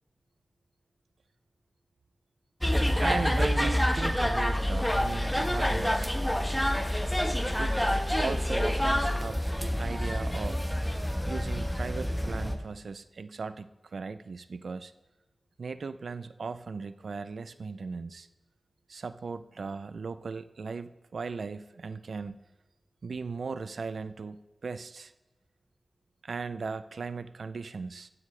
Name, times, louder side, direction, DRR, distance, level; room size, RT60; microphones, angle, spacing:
sound 1, 2.6-12.5, equal, 5° left, 1.2 m, -27 dB
voice 1, 3.0-6.2 7.6-7.8 8.2-10.6 11.3-14.9 15.6-18.3 18.9-22.4 23.0-25.1 26.2-28.1, right 4 dB, 75° right, 13 dB, 0.4 m, -37 dB
15.0 x 9.7 x 3.3 m, 1.1 s
wide cardioid pair, 75°, 0 cm